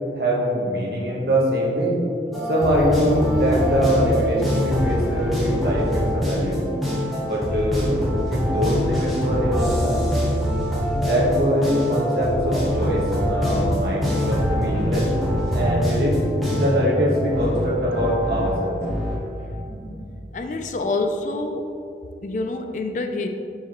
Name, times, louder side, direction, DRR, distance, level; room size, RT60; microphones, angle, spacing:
voice 1, 0.1-2.0 2.5-6.6 7.2-7.9 8.3-9.9 10.9-15.0 15.5-16.2 16.5-18.8 19.5-20.0, equal, 65° right, -3 dB, 1.2 m, -23 dB
sound 1, 2.3-19.2, equal, ahead, 1.1 m, -24 dB
sound 2, 14.2-20.8, right 1 dB, 20° right, 1.1 m, -33 dB
voice 2, 20.3-21.7 22.2-23.3, left 2 dB, 45° left, 6 dB, 0.3 m, -26 dB
6.6 x 4.9 x 3.0 m, 2.6 s
head